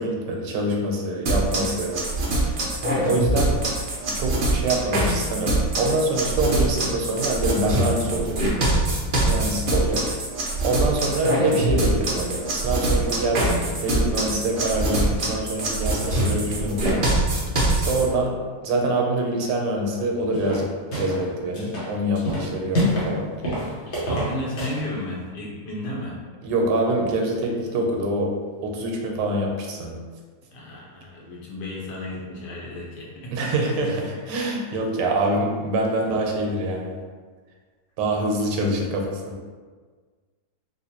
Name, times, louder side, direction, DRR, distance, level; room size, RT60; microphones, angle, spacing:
voice 1, 0.0-2.0 3.0-3.6 4.1-8.4 9.3-10.1 10.6-17.1 17.7-18.3 18.6-23.3 26.4-28.3 28.6-30.0 33.3-37.0 38.0-39.4, right 1 dB, 90° right, 0 dB, 1.3 m, -25 dB
sound 1, 1.3-18.0, right 1 dB, 75° right, 0.4 m, -23 dB
sound 2, 20.3-21.3 21.5-23.1 23.4-24.8, equal, 50° left, 1.0 m, -26 dB
voice 2, 24.1-26.2 30.5-33.5, left 1 dB, 75° left, -4 dB, 1.4 m, -33 dB
3.7 x 2.5 x 2.8 m, 1.5 s
omnidirectional pair, 1.8 m